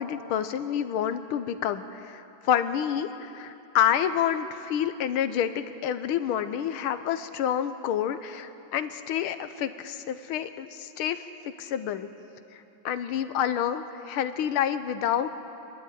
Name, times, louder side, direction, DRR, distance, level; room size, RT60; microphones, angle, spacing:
voice 1, 0.0-11.3 11.6-12.1 12.5-15.3, left 9 dB, 90° left, 11 dB, 1.7 m, -28 dB
25.5 x 12.5 x 9.2 m, 2.8 s
omnidirectional pair, 2.3 m